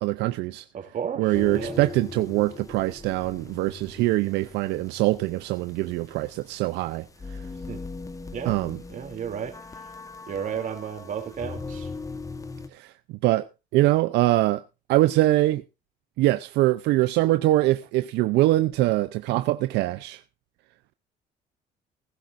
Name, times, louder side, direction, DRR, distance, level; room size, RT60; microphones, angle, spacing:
voice 1, 0.0-0.6 1.2-7.0 8.4-8.8 12.7-12.9 13.2-13.5 13.7-14.6 14.9-15.6 16.2-20.2, right 17 dB, 85° right, 0.6 m, -23 dB
voice 2, 0.7-1.8 7.7-7.8 8.3-8.6 8.9-9.6 10.3-11.9, right 8 dB, 50° right, 3.0 m, -33 dB
sound 1, 1.3-12.7, left 4 dB, 20° left, 1.2 m, -40 dB
19.5 x 11.5 x 2.6 m
cardioid pair, 110°, 17 cm